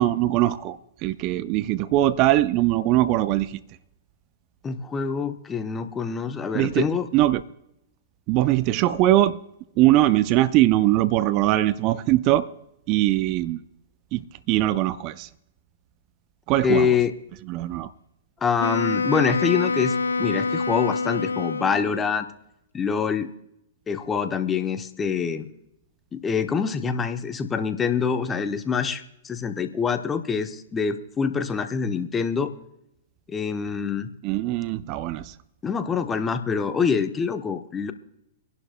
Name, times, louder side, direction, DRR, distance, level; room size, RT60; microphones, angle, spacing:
voice 1, 0.0-3.6 6.5-6.9 7.1-7.4 8.3-9.4 9.8-12.5 12.9-13.6 14.1-15.3 16.5-16.9 17.5-17.9 34.2-35.3, right 15 dB, 40° right, 0.5 m, -21 dB
voice 2, 4.6-7.1 16.6-17.1 18.4-22.3 22.7-23.3 23.9-25.5 26.1-32.5 33.3-34.1 35.6-37.9, left 6 dB, 15° left, 0.8 m, -25 dB
Wind instrument woodwind instrument, 18.6-22.2, left 4 dB, 85° left, 0.6 m, -26 dB
25.5 x 11.0 x 2.3 m
hypercardioid pair, 115°, 0 cm